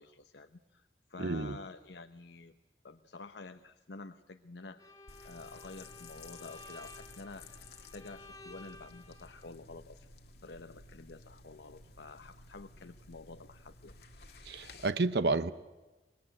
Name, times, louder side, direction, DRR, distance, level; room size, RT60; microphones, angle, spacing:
voice 1, 0.0-2.5 2.8-4.9 5.2-10.1 10.4-13.9, left 3 dB, 80° left, 8 dB, 0.9 m, -49 dB
voice 2, 1.2-1.6 14.4-15.5, right 3 dB, 70° right, 12 dB, 0.8 m, -30 dB
Bowed string instrument, 4.8-9.5, left 2 dB, 20° left, 1.6 m, -53 dB
sound 1, 5.1-14.9, left 3 dB, 65° left, 1.8 m, -54 dB
25.0 x 20.5 x 9.0 m, 1.1 s
head